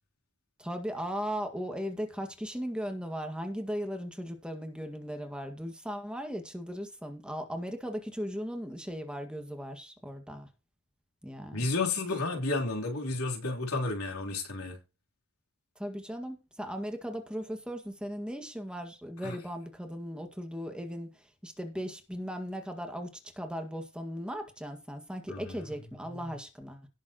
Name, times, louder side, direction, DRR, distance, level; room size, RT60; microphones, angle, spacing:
voice 1, 0.6-10.5 11.2-11.7 15.7-26.9, equal, 5° right, 1.9 m, -37 dB
voice 2, 11.5-14.8 19.2-19.4 25.3-25.6 26.1-26.3, left 3 dB, 85° left, 3.5 m, -32 dB
18.0 x 7.4 x 3.0 m
head